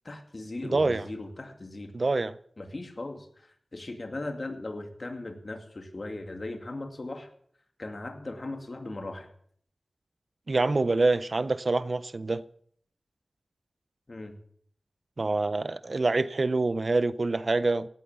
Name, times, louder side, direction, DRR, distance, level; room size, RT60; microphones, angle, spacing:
voice 1, 0.0-1.9 2.6-7.3 7.8-9.3 14.1-14.4, left 2 dB, 45° left, 2.4 m, -38 dB
voice 2, 0.7-1.0 1.9-2.3 10.5-12.4 15.2-17.9, right 3 dB, 50° right, 0.5 m, -26 dB
17.5 x 9.3 x 6.9 m
wide cardioid pair, 85°, 0 cm